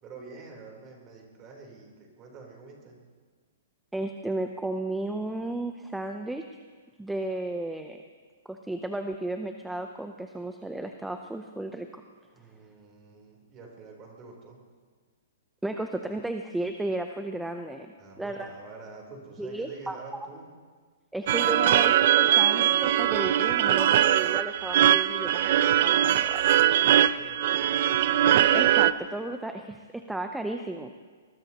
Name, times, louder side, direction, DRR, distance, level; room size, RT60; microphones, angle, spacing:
voice 1, 0.0-3.0 12.3-14.6 18.0-20.5 26.8-27.9, right 4 dB, 25° right, 0 dB, 3.6 m, -47 dB
voice 2, 3.9-6.6 7.0-8.0 8.5-12.0 15.6-18.5 19.4-20.0 21.1-26.4 28.5-30.9, right 2 dB, 5° right, 5 dB, 0.6 m, -34 dB
sound 1, 21.3-28.9, right 11 dB, 50° right, 0.4 m, -21 dB
23.0 x 20.5 x 2.9 m, 1.6 s
hypercardioid pair, 160°, 0 cm